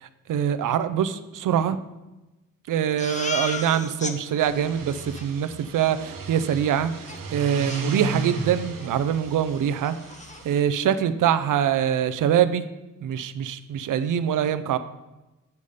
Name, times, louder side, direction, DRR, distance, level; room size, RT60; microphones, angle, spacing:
voice 1, 0.0-1.8 2.7-6.9 7.3-10.0 10.4-12.6 13.0-14.8, right 9 dB, 70° right, 12 dB, 0.5 m, -24 dB
Crying sobbing, 3.0-4.2 4.6-4.7 4.9-5.3 7.1-7.2 7.7-8.4 8.8-9.0 9.3-9.4 9.7-10.4, left 3 dB, 20° left, 0.6 m, -34 dB
sound 1, 4.3-10.6, right 4 dB, 90° right, 1.1 m, -34 dB
8.2 x 5.4 x 5.0 m, 1.0 s
wide cardioid pair, 125°, 32 cm